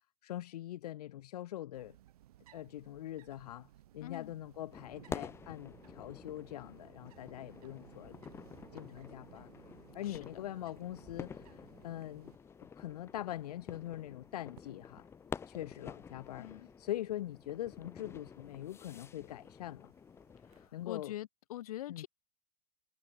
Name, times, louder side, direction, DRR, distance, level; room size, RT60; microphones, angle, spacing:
voice 1, 0.2-2.0 2.5-3.7 3.9-8.1 8.7-9.5 9.9-12.3 12.8-15.1 15.5-19.9 20.7-21.1 21.9-22.1, left 13 dB, 90° left, 1.0 m, -43 dB
sound 1, 1.7-21.1, right 13 dB, 75° right, 6.8 m, -61 dB
voice 2, 4.0-4.3 10.0-10.4 16.4-16.7 20.5-22.1, left 14 dB, 75° left, 2.8 m, -44 dB
sound 2, 4.7-20.7, left 6 dB, 15° left, 3.4 m, -49 dB
supercardioid pair, 165°, 19 cm